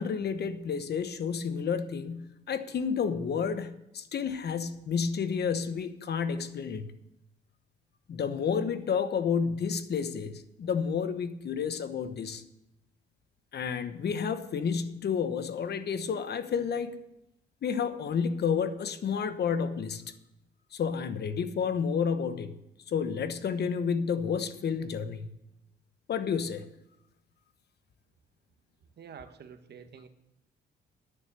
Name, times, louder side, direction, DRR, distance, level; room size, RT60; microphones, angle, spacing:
voice 1, 0.0-6.9 8.1-12.4 13.5-17.0 17.6-20.0 20.7-22.5 22.9-25.3 26.1-26.6, left 6 dB, 55° left, 11 dB, 1.1 m, -30 dB
voice 2, 29.0-30.1, right 7 dB, 55° right, 8 dB, 1.2 m, -48 dB
9.8 x 9.5 x 6.8 m, 0.84 s
cardioid pair, 90°, 20 cm